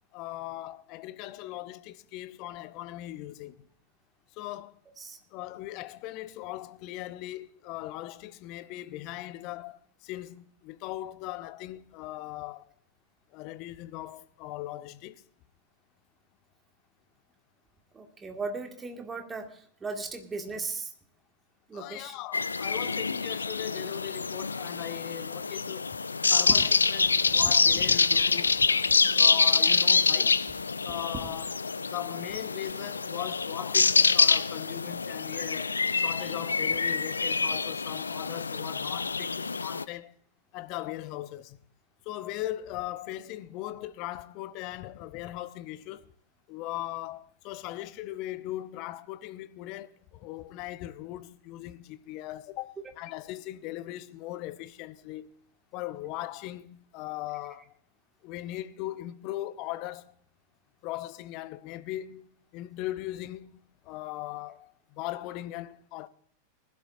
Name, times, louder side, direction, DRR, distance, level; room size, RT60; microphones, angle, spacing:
voice 1, 0.1-3.7 4.3-4.8 5.3-12.7 13.3-15.2 21.7-26.0 26.2-30.5 30.8-31.5 31.9-40.1 40.5-41.6 42.0-46.1 46.5-55.3 55.7-57.7 58.2-60.1 60.8-62.3 62.5-66.1, left 15 dB, 40° left, 0.8 m, -39 dB
voice 2, 17.9-20.9 21.7-22.2, right 4 dB, 15° right, 2.1 m, -37 dB
sound 1, 22.3-39.8, left 4 dB, 75° left, 0.4 m, -26 dB
20.5 x 12.0 x 2.6 m
figure-of-eight pair, 90°, 0 cm